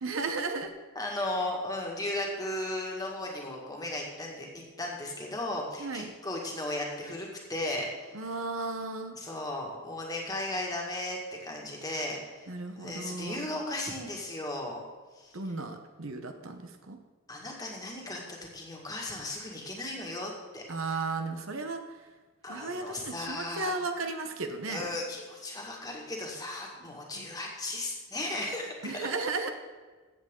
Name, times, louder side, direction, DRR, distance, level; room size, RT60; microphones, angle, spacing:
voice 1, 0.0-0.7 5.8-6.1 8.1-9.2 12.5-13.5 15.3-17.0 20.7-21.8 22.5-24.9 27.1-27.3 28.8-29.5, right 3 dB, 70° right, 6 dB, 1.0 m, -34 dB
voice 2, 1.0-8.2 9.2-12.5 12.8-14.8 15.2-15.4 17.3-18.2 18.5-21.0 22.4-23.7 24.7-29.1, left 1 dB, 20° left, -1 dB, 1.9 m, -36 dB
15.0 x 7.8 x 3.8 m, 1.4 s
head